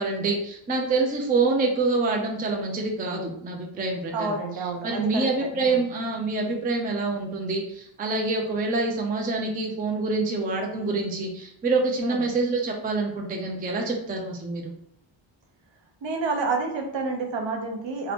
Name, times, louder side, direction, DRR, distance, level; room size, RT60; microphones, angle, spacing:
voice 1, 0.0-4.4 4.8-14.7, right 3 dB, 20° right, 1 dB, 0.3 m, -26 dB
voice 2, 4.1-5.3 5.5-5.8 12.0-12.3 16.0-18.1, right 3 dB, 60° right, 2 dB, 0.8 m, -29 dB
2.7 x 2.5 x 3.4 m, 0.75 s
wide cardioid pair, 140°, 49 cm